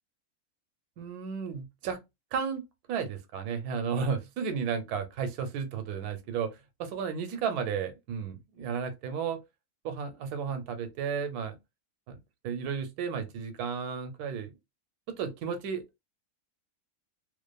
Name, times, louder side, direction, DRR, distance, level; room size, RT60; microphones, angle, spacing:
voice 1, 1.0-2.0 2.3-2.6 2.9-6.5 6.8-9.4 9.8-11.5 12.1-12.2 12.4-14.5 15.1-15.8, right 6 dB, 90° right, 1.1 m, -33 dB
2.5 x 2.4 x 2.2 m
omnidirectional pair, 1.6 m